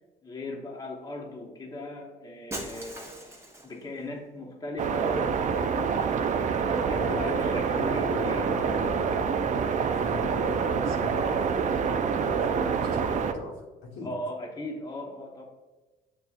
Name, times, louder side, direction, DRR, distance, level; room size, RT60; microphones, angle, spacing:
voice 1, 0.2-3.3 3.6-8.6 14.0-15.4, left 1 dB, 20° left, -2 dB, 1.0 m, -38 dB
Shatter, 2.5-3.9, right 1 dB, 15° right, 0.9 m, -39 dB
sound 1, 4.8-13.3, right 6 dB, 40° right, 0.4 m, -26 dB
voice 2, 6.9-9.2 9.9-11.5 12.2-14.1, left 3 dB, 85° left, -3 dB, 1.2 m, -38 dB
6.7 x 2.5 x 2.4 m, 1.2 s
supercardioid pair, 75°, 18 cm